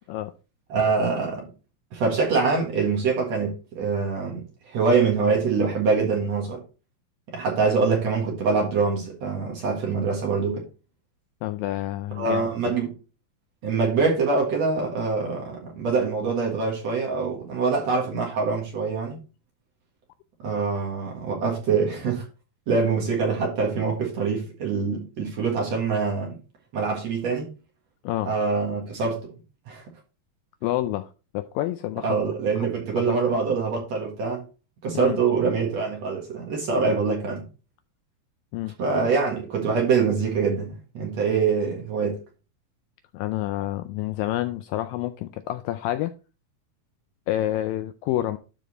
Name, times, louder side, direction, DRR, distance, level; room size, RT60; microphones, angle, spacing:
voice 1, 0.7-1.5 1.9-4.4 4.7-6.6 7.3-10.7 12.2-12.9 13.6-19.2 20.4-22.3 22.7-26.4 26.7-27.5 28.3-29.3 29.7-29.8 32.0-34.4 34.8-37.4 38.8-42.2, right 4 dB, 50° right, 2.4 m, -24 dB
voice 2, 11.4-12.8 28.0-28.3 30.6-32.1 32.6-32.7 33.1-33.4 34.9-35.2 38.5-38.7 43.1-46.1 47.3-48.4, left 14 dB, 80° left, 2.0 m, -28 dB
12.5 x 4.2 x 4.0 m
omnidirectional pair, 4.4 m